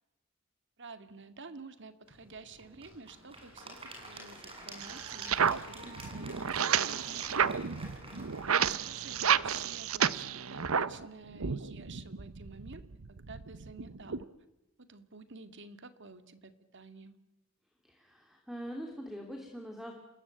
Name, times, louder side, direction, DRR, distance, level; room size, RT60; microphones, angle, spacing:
voice 1, 0.8-6.5 6.8-7.7 8.4-14.2 14.8-17.2, right 4 dB, 60° right, 10 dB, 2.0 m, -51 dB
Applause / Crowd, 2.1-11.1, right 1 dB, 25° right, 7.5 m, -49 dB
sound 1, 4.8-11.1 11.3-14.2, right 7 dB, 80° right, 0.9 m, -31 dB
voice 2, 17.8-19.9, equal, ahead, 3 dB, 3.0 m, -43 dB
28.5 x 20.0 x 9.0 m, 0.97 s
head